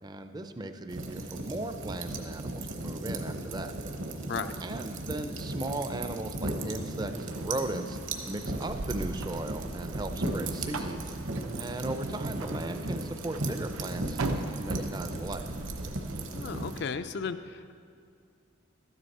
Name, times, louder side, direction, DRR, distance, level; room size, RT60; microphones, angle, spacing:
voice 1, 0.0-3.7 4.6-8.0 8.3-11.2 11.6-15.5, right 2 dB, 20° right, 8 dB, 0.4 m, -37 dB
sound 1, 0.9-16.8, right 2 dB, 65° right, 1.0 m, -36 dB
sound 2, 7.1-16.9, right 2 dB, 90° right, 0.7 m, -40 dB
voice 2, 16.3-17.7, left 5 dB, 50° left, 10 dB, 0.3 m, -35 dB
13.0 x 9.9 x 4.1 m, 2.3 s
head